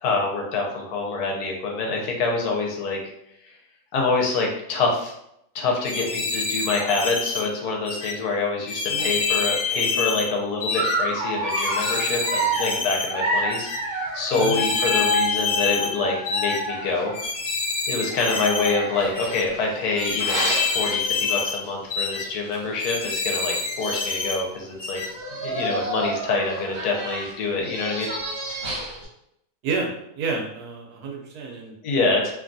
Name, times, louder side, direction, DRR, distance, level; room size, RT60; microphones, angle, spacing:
voice 1, 0.0-3.0 3.4-3.5 3.9-5.1 5.5-13.7 14.1-17.1 17.9-25.0 25.4-28.1 31.8-32.3, left 3 dB, 85° left, 0 dB, 1.2 m, -26 dB
sound 1, 5.8-7.4 7.8-8.1 8.7-10.3 10.6-11.0 11.5-13.1 13.5-13.8 14.3-15.9 16.2-16.6 17.1-18.7 19.1-19.4 20.0-21.6 21.9-22.2 22.8-24.4 24.8-25.1, left 5 dB, 60° left, 0.5 m, -27 dB
Dog, 10.7-17.3 18.1-21.7 22.1-22.3 22.5-22.6 23.5-23.6 23.8-24.3 25.0-29.1, right 1 dB, 50° right, 1.2 m, -29 dB
voice 2, 30.2-31.7, right 4 dB, 80° right, 0 dB, 1.2 m, -29 dB
2.9 x 2.3 x 2.5 m, 0.76 s
omnidirectional pair, 1.6 m